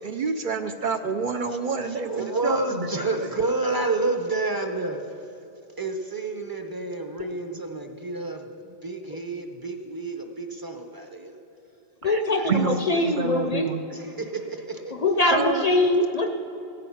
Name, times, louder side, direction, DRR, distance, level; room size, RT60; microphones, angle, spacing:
voice 1, 0.0-3.1 12.0-12.2 12.5-12.8 13.0-13.9 15.2-15.6, right 5 dB, 55° right, 7 dB, 0.7 m, -28 dB
voice 2, 1.9-5.0 5.8-11.3 12.3-12.7 13.0-13.2 13.9-14.9, right 2 dB, 25° right, 5 dB, 0.8 m, -30 dB
voice 3, 12.0-13.7 14.9-16.3, left 2 dB, 45° left, 6 dB, 0.6 m, -23 dB
16.5 x 9.1 x 5.7 m, 2.8 s
omnidirectional pair, 1.1 m